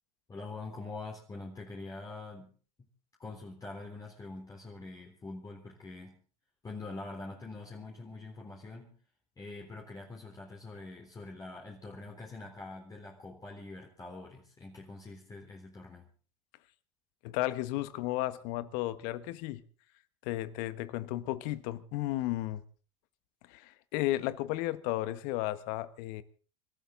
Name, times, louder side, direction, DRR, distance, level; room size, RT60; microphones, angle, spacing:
voice 1, 0.3-2.5 3.2-6.2 6.6-9.0 9.4-16.1, left 3 dB, 25° left, 3.7 m, -44 dB
voice 2, 17.2-19.6 20.2-22.6 23.5-26.2, left 16 dB, 65° left, 1.3 m, -34 dB
27.0 x 13.0 x 3.9 m
hypercardioid pair, 85°, 16 cm